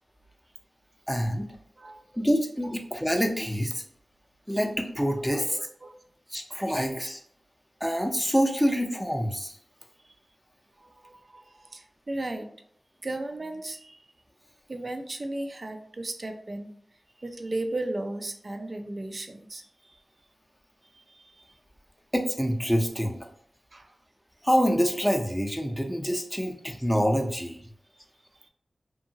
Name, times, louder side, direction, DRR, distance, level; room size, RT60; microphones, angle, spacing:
voice 1, 1.1-1.5 2.1-3.8 4.5-5.6 6.3-7.2 7.8-9.5 22.1-23.2 24.4-27.6, equal, ahead, 3 dB, 0.6 m, -26 dB
voice 2, 5.2-5.9 10.0-10.2 10.8-12.5 13.0-14.0 14.7-16.7 17.2-20.0 20.8-21.5 23.7-23.9, right 2 dB, 50° right, 5 dB, 0.4 m, -36 dB
2.8 x 2.6 x 2.7 m, 0.64 s
cardioid pair, 45°, 0 cm